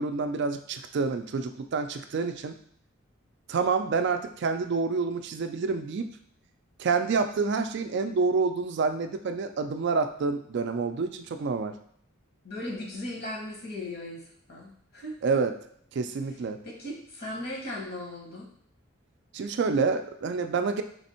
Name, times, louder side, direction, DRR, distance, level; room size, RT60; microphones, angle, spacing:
voice 1, 0.0-2.6 3.5-6.1 6.8-11.8 15.2-15.5 15.9-16.6 19.3-20.8, right 4 dB, 55° right, 8 dB, 0.3 m, -28 dB
voice 2, 12.4-14.2 14.5-15.2 16.6-18.5, left 1 dB, 50° left, -2 dB, 1.2 m, -37 dB
3.4 x 3.4 x 4.3 m, 0.64 s
head